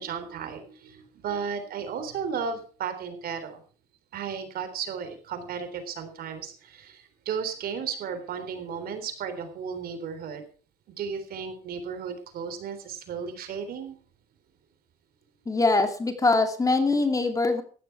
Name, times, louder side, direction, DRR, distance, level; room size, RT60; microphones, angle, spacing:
voice 1, 0.0-3.6 4.1-10.4 11.0-13.9, right 6 dB, 65° right, 8 dB, 3.6 m, -34 dB
voice 2, 15.5-17.6, left 3 dB, 20° left, 7 dB, 2.5 m, -23 dB
15.5 x 11.5 x 4.6 m, 0.40 s
cardioid pair, 110°, 17 cm